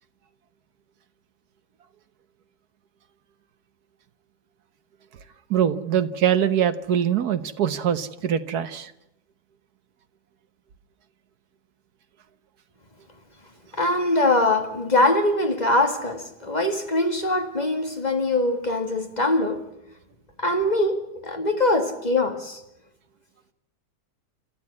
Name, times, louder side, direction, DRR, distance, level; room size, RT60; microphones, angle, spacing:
voice 1, 5.5-8.9, right 9 dB, 65° right, 1.5 m, -23 dB
voice 2, 13.7-19.6 20.4-22.6, left 2 dB, 25° left, 2.2 m, -22 dB
28.0 x 14.0 x 9.6 m
omnidirectional pair, 1.8 m